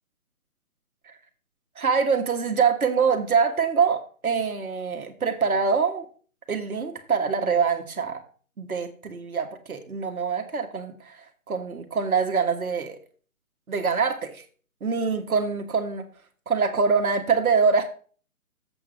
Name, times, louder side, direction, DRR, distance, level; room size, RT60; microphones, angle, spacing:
voice 1, 1.8-6.1 6.5-8.2 8.6-13.0 13.7-14.4 14.8-16.0 16.5-17.9, right 5 dB, 75° right, 5 dB, 1.6 m, -24 dB
7.8 x 4.9 x 7.1 m, 0.42 s
figure-of-eight pair, 150°, 43 cm